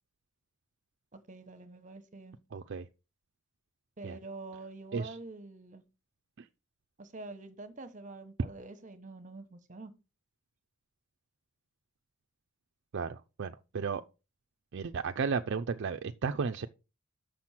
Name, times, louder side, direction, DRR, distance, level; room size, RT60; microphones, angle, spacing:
voice 1, 1.1-2.4 4.0-5.8 7.0-9.9, right 3 dB, 35° right, 1.0 m, -46 dB
voice 2, 2.5-2.9 4.0-4.2 4.9-5.2 6.4-6.5 12.9-14.0 14.7-16.7, right 5 dB, 55° right, 0.4 m, -34 dB
6.7 x 6.0 x 5.7 m
head